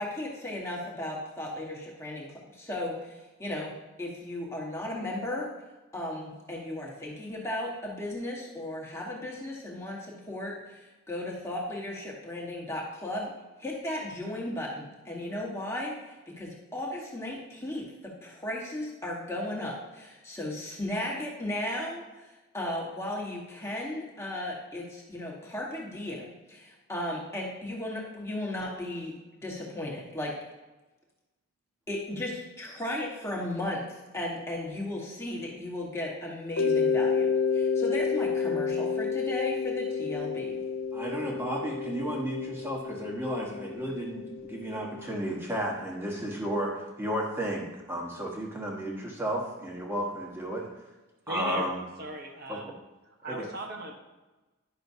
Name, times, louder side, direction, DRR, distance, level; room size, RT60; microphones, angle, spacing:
voice 1, 0.0-3.7 4.0-5.5 5.9-13.3 13.6-22.0 22.5-29.1 29.4-30.3 31.9-40.6, left 1 dB, 15° left, -3 dB, 1.3 m, -35 dB
Mallet percussion, 36.6-45.2, left 5 dB, 80° left, 0.6 m, -30 dB
voice 2, 40.9-50.7 51.3-51.8 52.5-52.6 53.3-53.5, equal, 10° right, -2 dB, 1.2 m, -33 dB
voice 3, 51.3-52.7 53.2-53.9, right 2 dB, 50° right, 2 dB, 0.9 m, -37 dB
10.5 x 6.2 x 2.7 m, 1.1 s
head